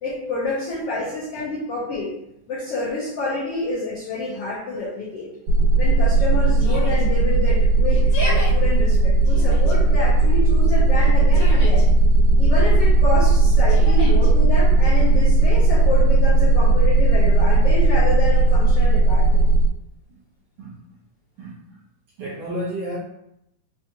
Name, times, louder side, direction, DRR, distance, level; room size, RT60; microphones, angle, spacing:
voice 1, 0.0-2.1 2.5-5.3 5.8-11.8 12.4-19.4, left 2 dB, 80° left, -7 dB, 1.3 m, -28 dB
sound 1, 5.5-19.7, right 2 dB, 90° right, 2.5 m, -16 dB
Yell, 6.6-7.1 7.9-8.5 9.2-9.8 10.9-11.9 13.7-14.3, left 1 dB, 60° left, 1.5 m, -32 dB
voice 2, 21.4-21.8 22.2-23.0, right 1 dB, 70° right, -8 dB, 1.6 m, -33 dB
5.5 x 2.3 x 2.8 m, 0.80 s
omnidirectional pair, 3.8 m